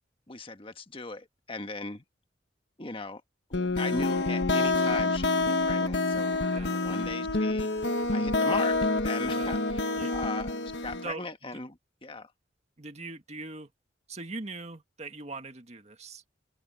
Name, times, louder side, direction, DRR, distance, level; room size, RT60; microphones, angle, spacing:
voice 1, 0.3-2.0 2.8-3.2 3.5-7.7 8.1-12.3, left 3 dB, 30° left, 1.5 m, -38 dB
sound 1, 3.5-11.1, left 3 dB, 70° left, 1.3 m, -27 dB
voice 2, 12.8-13.7 14.1-16.4, right 3 dB, 40° right, 1.8 m, -41 dB
head